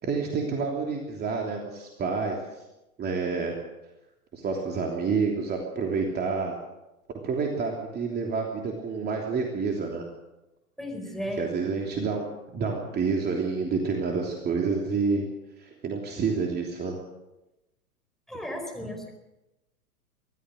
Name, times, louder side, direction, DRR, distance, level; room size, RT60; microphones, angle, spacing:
voice 1, 0.0-2.4 3.0-3.6 4.3-6.6 7.2-10.0 11.4-12.3 12.5-15.2 15.6-17.0, right 4 dB, 20° right, 1 dB, 3.2 m, -28 dB
voice 2, 10.8-11.8 18.3-19.1, equal, ahead, 2 dB, 4.7 m, -35 dB
24.5 x 18.0 x 6.5 m, 0.97 s
figure-of-eight pair, 110°, 45 cm